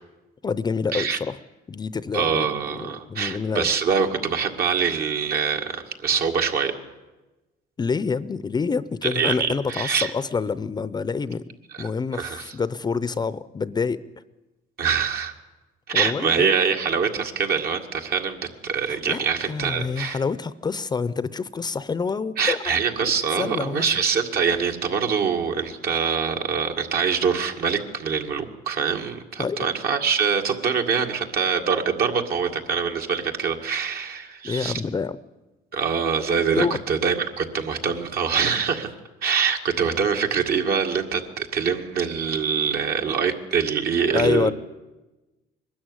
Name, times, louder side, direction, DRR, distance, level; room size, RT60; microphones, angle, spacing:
voice 1, 0.4-1.4 1.7-2.5 2.8-3.7 7.8-11.4 11.8-14.0 15.9-16.5 19.1-22.6 23.3-23.9 29.4-29.6 34.4-35.2 36.6-36.8 44.1-44.5, left 5 dB, 25° left, 16 dB, 0.6 m, -27 dB
voice 2, 2.1-6.7 9.0-10.1 11.8-11.9 12.1-12.5 14.8-15.3 15.9-20.2 22.4-34.8 35.7-38.9 39.2-44.5, right 6 dB, 65° right, 3 dB, 2.1 m, -24 dB
22.0 x 13.0 x 9.7 m, 1.1 s
cardioid pair, 110°, 17 cm